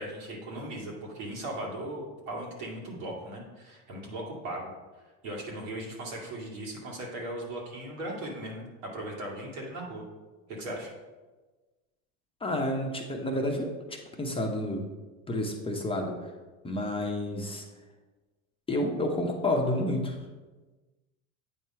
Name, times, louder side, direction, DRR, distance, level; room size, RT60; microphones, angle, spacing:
voice 1, 0.0-4.7 5.2-10.1 10.5-10.9, right 1 dB, 80° right, -2 dB, 2.3 m, -38 dB
voice 2, 12.4-14.8 15.3-16.1 16.6-17.6 18.7-20.2, left 1 dB, 15° left, 1 dB, 0.8 m, -30 dB
8.5 x 3.0 x 5.6 m, 1.2 s
supercardioid pair, 115°, 38 cm